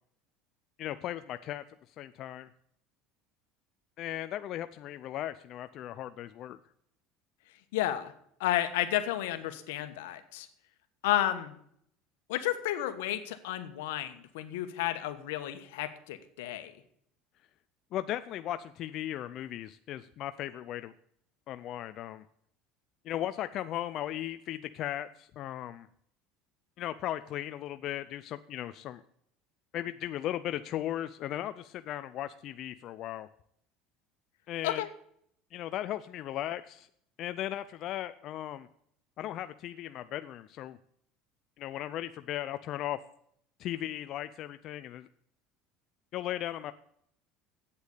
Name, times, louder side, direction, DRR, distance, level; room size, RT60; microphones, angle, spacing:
voice 1, 0.8-1.6 2.0-2.5 4.0-6.6 17.9-20.9 21.5-22.2 23.0-25.9 26.8-29.0 29.7-33.3 34.5-34.8 35.5-36.9 37.2-38.7 39.2-40.8 41.6-43.0 43.6-45.1 46.1-46.7, left 12 dB, 50° left, 11 dB, 0.5 m, -37 dB
voice 2, 7.7-8.1 8.4-10.5 11.0-11.5 12.3-16.7 34.6-34.9, left 13 dB, 90° left, 10 dB, 1.2 m, -32 dB
8.4 x 8.1 x 8.3 m, 0.68 s
supercardioid pair, 120°, 0 cm